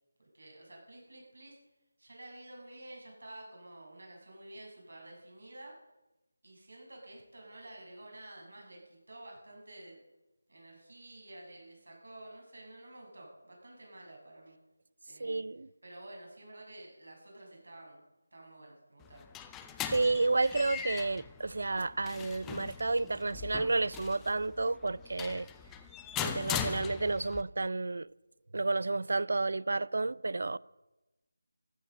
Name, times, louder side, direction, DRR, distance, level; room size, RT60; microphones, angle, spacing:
voice 1, 0.2-1.6 2.0-5.8 6.4-10.0 10.5-14.6 15.0-15.4 15.8-18.0 18.3-19.3, right 1 dB, 80° right, 7.6 m, -51 dB
voice 2, 15.2-15.7 19.9-25.5 26.2-28.1 28.5-30.6, right 3 dB, 65° right, 0.5 m, -31 dB
sound 1, 19.0-27.4, left 8 dB, 10° left, 0.6 m, -40 dB
15.0 x 13.0 x 6.7 m
figure-of-eight pair, 170°, 0 cm